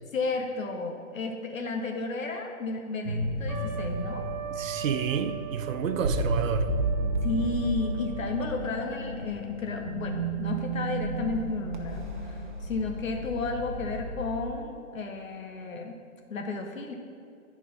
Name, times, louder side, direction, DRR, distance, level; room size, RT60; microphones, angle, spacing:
voice 1, 0.1-4.3 7.2-16.0 16.3-16.9, left 3 dB, 70° left, 3 dB, 1.0 m, -33 dB
sound 1, 3.0-14.5, right 2 dB, 35° right, 0.8 m, -32 dB
Trumpet, 3.5-8.5, right 7 dB, 85° right, 1.3 m, -39 dB
voice 2, 4.5-6.7, right 7 dB, 70° right, 10 dB, 0.7 m, -29 dB
10.5 x 4.9 x 5.3 m, 2.4 s
hypercardioid pair, 175°, 41 cm